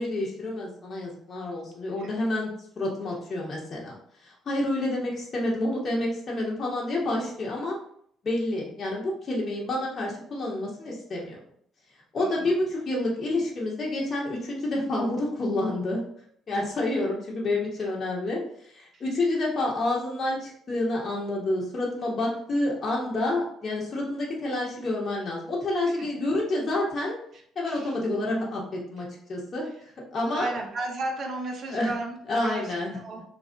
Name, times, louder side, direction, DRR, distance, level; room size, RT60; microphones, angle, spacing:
voice 1, 0.0-2.5 2.8-3.9 4.2-7.8 8.2-11.4 12.1-16.0 16.5-18.4 18.7-27.2 27.5-29.7 30.1-30.5 31.7-31.9 32.3-33.0, left 2 dB, 45° left, -3 dB, 1.1 m, -28 dB
voice 2, 12.2-12.5 17.8-17.9 18.9-19.0 26.0-26.1 27.7-28.0 30.3-32.2 32.4-33.2, right 2 dB, 55° right, 2 dB, 0.8 m, -34 dB
3.4 x 2.5 x 3.3 m, 0.65 s
hypercardioid pair, 50°, 0 cm